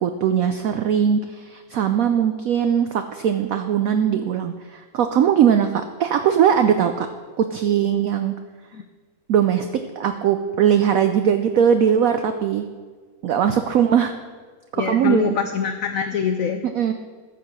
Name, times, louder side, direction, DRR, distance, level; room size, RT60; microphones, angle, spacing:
voice 1, 0.0-7.1 7.4-8.3 9.3-9.7 10.0-12.7 13.2-14.1 14.7-15.4 16.7-16.9, right 8 dB, 85° right, 8 dB, 0.7 m, -20 dB
voice 2, 14.7-16.6, left 7 dB, 90° left, 7 dB, 0.7 m, -24 dB
14.0 x 4.8 x 6.1 m, 1.5 s
omnidirectional pair, 2.1 m